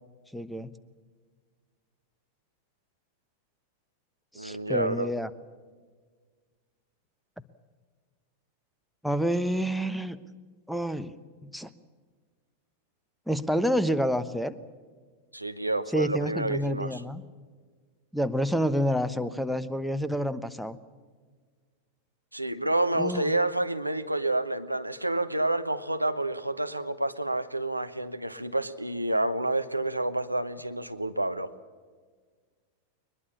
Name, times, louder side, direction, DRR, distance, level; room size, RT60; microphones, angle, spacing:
voice 1, 0.3-0.7 4.3-5.3 9.0-10.2 10.7-11.1 11.4-11.7 13.3-14.5 15.9-17.2 18.1-20.8 22.9-23.2, equal, ahead, 14 dB, 1.0 m, -28 dB
voice 2, 4.4-5.1 15.3-17.0 22.3-31.5, right 2 dB, 85° right, 10 dB, 1.0 m, -29 dB
22.5 x 21.5 x 7.2 m, 1.6 s
figure-of-eight pair, 90°, 0 cm